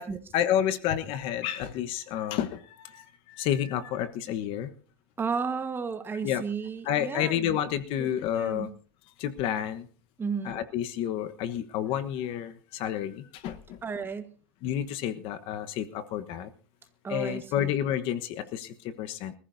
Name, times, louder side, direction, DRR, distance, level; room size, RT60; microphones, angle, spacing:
voice 1, 0.3-4.7 6.2-6.4 6.9-8.7 9.2-9.9 10.4-13.8 14.6-16.5 17.1-19.3, left 10 dB, 55° left, 11 dB, 1.2 m, -30 dB
voice 2, 5.2-7.6 8.0-8.7 10.2-10.6 13.8-14.3 17.0-17.7, right 5 dB, 20° right, 9 dB, 1.4 m, -33 dB
25.5 x 14.5 x 2.7 m, 0.38 s
supercardioid pair, 130°, 11 cm